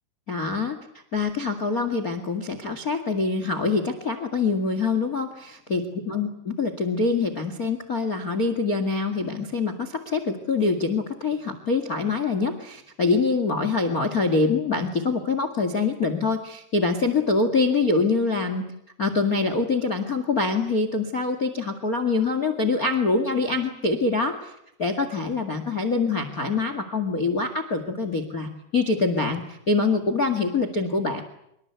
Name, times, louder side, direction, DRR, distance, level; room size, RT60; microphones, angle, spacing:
voice 1, 0.3-0.8 1.1-18.7 19.0-24.5 24.8-31.2, left 3 dB, 35° left, 10 dB, 1.4 m, -25 dB
26.5 x 23.5 x 8.2 m, 0.79 s
omnidirectional pair, 4.8 m